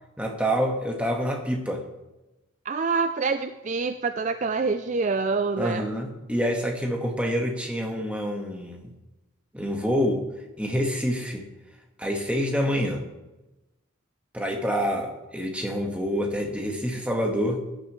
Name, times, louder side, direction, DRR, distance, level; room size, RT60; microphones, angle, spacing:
voice 1, 0.2-1.8 5.6-8.9 9.5-10.2 10.6-11.4 12.0-13.0 14.3-17.6, equal, 5° right, 1 dB, 1.5 m, -27 dB
voice 2, 2.7-5.9, right 4 dB, 35° right, 9 dB, 0.4 m, -26 dB
15.5 x 10.5 x 3.2 m, 1.0 s
head